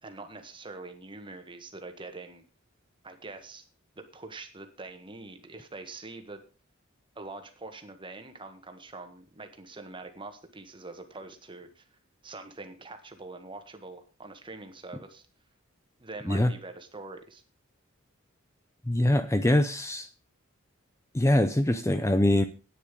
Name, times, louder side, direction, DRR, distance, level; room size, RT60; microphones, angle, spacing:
voice 1, 0.0-2.4 3.0-3.6 3.9-6.4 7.1-11.9 12.2-15.3 16.0-17.4, right 3 dB, 25° right, 7 dB, 1.6 m, -44 dB
voice 2, 18.9-20.1 21.1-22.4, left 1 dB, 15° left, 10 dB, 0.6 m, -23 dB
10.5 x 9.4 x 5.3 m, 0.34 s
head